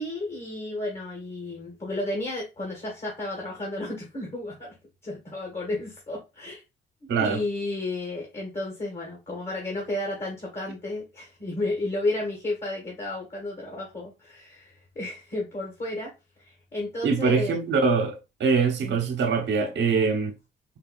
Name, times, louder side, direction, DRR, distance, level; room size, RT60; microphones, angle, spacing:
voice 1, 0.0-4.7 5.0-6.6 7.2-16.1 16.4-17.6 18.8-19.0, left 2 dB, 35° left, 1.8 m, -32 dB
voice 2, 7.1-7.4 17.0-20.3, right 5 dB, 60° right, 1.2 m, -23 dB
4.6 x 2.8 x 2.4 m
cardioid pair, 90°, 20 cm